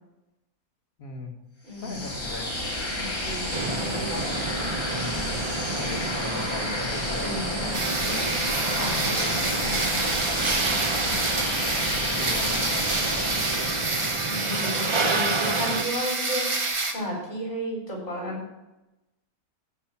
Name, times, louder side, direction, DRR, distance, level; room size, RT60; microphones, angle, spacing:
voice 1, 1.0-1.3 1.8-2.5 3.5-3.9 4.9-5.3 5.8-7.4 8.1-8.4 9.0-9.4 12.0-12.6, left 3 dB, 65° left, 2 dB, 2.0 m, -38 dB
voice 2, 1.6-2.0 2.9-4.3 5.9-6.1 7.2-7.8 8.6-10.1 14.2-16.4 16.9-18.4, equal, 50° left, -3 dB, 4.3 m, -34 dB
sound 1, 1.7-14.5, left 1 dB, 20° left, 1.4 m, -31 dB
sound 2, 3.5-15.8, right 3 dB, 50° right, 0.3 m, -31 dB
sound 3, 7.7-16.9, right 3 dB, 25° right, 0.8 m, -28 dB
15.0 x 5.2 x 5.8 m, 0.98 s
omnidirectional pair, 1.6 m